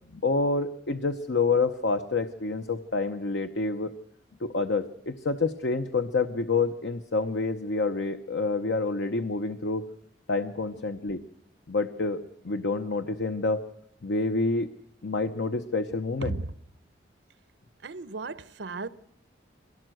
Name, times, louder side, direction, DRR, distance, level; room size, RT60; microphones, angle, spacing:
voice 1, 0.1-3.9 4.4-9.8 10.3-11.2 11.7-12.2 12.4-13.6 14.0-14.7 15.0-16.4, left 3 dB, 70° left, 0.8 m, -28 dB
voice 2, 16.2-16.5 17.8-18.9, right 3 dB, 65° right, 0.8 m, -35 dB
23.0 x 17.5 x 7.8 m
head